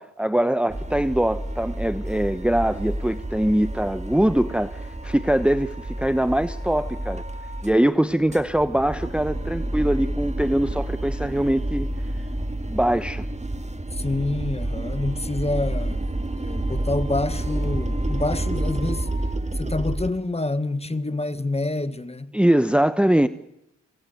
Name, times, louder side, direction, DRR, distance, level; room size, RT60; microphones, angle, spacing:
voice 1, 0.0-7.2 7.6-11.9 12.7-13.2 22.3-23.3, right 1 dB, 5° right, 1.1 m, -22 dB
sound 1, 0.7-7.8 8.1-20.1, right 1 dB, 20° right, 2.1 m, -29 dB
voice 2, 13.9-16.0 16.4-19.1 19.5-22.3, left 2 dB, 20° left, 1.7 m, -27 dB
28.5 x 17.0 x 9.3 m
supercardioid pair, 40°, 33 cm